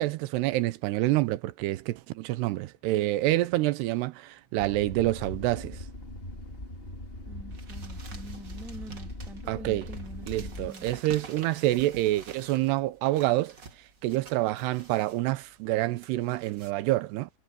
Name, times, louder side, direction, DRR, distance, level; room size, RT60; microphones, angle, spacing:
voice 1, 0.0-5.8 9.5-9.9 10.3-13.5 14.0-17.3, right 17 dB, 85° right, 2.8 m, -27 dB
sound 1, 4.6-10.7, left 1 dB, 15° left, 2.4 m, -40 dB
voice 2, 7.2-10.9, right 1 dB, ahead, 0.9 m, -45 dB
sound 2, 7.5-16.7, right 4 dB, 35° right, 1.4 m, -49 dB
omnidirectional pair, 4.7 m